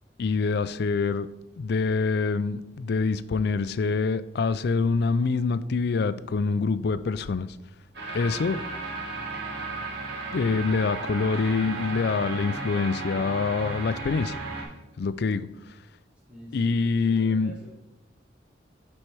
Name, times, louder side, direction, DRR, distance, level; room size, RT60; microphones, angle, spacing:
voice 1, 0.2-1.3 1.6-7.5 8.1-8.6 10.3-14.4 15.0-15.5 16.5-17.5, left 4 dB, 65° left, 15 dB, 0.4 m, -25 dB
sound 1, 7.9-14.6, right 3 dB, 65° right, 1.8 m, -34 dB
voice 2, 16.3-17.7, right 1 dB, 5° right, -6 dB, 1.6 m, -47 dB
9.8 x 4.4 x 4.7 m, 0.92 s
head